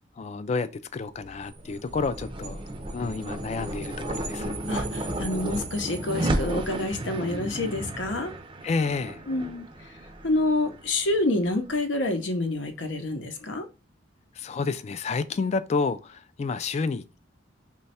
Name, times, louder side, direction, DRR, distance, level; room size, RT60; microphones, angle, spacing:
voice 1, 0.2-2.6 2.9-4.6 8.6-9.2 14.4-17.2, left 4 dB, 35° left, 0.3 m, -30 dB
sound 1, 1.2-11.8, right 1 dB, 25° right, 0.5 m, -33 dB
voice 2, 4.7-8.3 9.3-9.6 10.2-13.7, left 2 dB, 80° left, 0.7 m, -27 dB
3.1 x 2.3 x 4.1 m
head